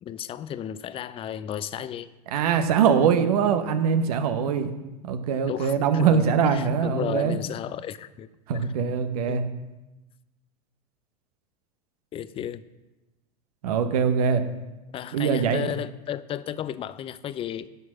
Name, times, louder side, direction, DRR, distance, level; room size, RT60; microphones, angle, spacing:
voice 1, 0.0-2.1 5.5-8.3 9.3-9.4 12.1-12.6 14.9-17.7, left 10 dB, 30° left, 15 dB, 0.5 m, -33 dB
voice 2, 2.3-4.7 5.0-7.4 8.5-9.4 13.6-14.4 15.1-15.7, right 7 dB, 70° right, 8 dB, 1.0 m, -22 dB
11.0 x 6.3 x 6.1 m, 1.1 s
hypercardioid pair, 90°, 20 cm